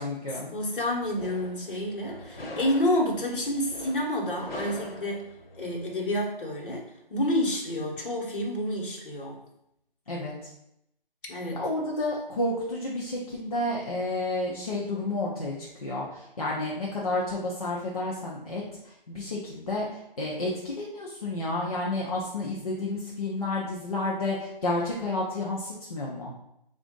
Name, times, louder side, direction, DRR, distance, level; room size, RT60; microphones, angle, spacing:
voice 1, 0.0-0.5 10.1-10.3 11.6-18.6 19.1-19.9 20.2-26.3, left 2 dB, 40° left, -5 dB, 0.6 m, -30 dB
voice 2, 0.5-5.3 5.6-6.8 7.1-9.4 11.3-11.6, left 1 dB, 65° left, -1 dB, 1.1 m, -29 dB
sound 1, 0.8-5.9, left 1 dB, 85° left, 1.0 m, -43 dB
3.5 x 2.5 x 3.7 m, 0.79 s
hypercardioid pair, 170°, 29 cm